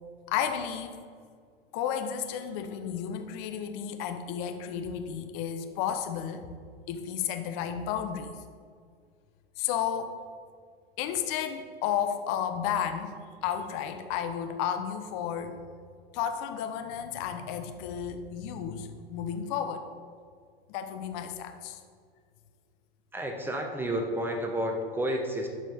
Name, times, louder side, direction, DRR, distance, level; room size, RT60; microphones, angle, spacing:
voice 1, 0.3-1.0 1.7-6.4 6.9-8.3 9.6-10.2 11.0-15.6 16.1-19.9 20.7-21.8, left 8 dB, 50° left, 7 dB, 0.9 m, -32 dB
voice 2, 23.1-25.5, equal, 5° right, 2 dB, 1.2 m, -30 dB
12.0 x 5.0 x 3.6 m, 2.1 s
hypercardioid pair, 95°, 30 cm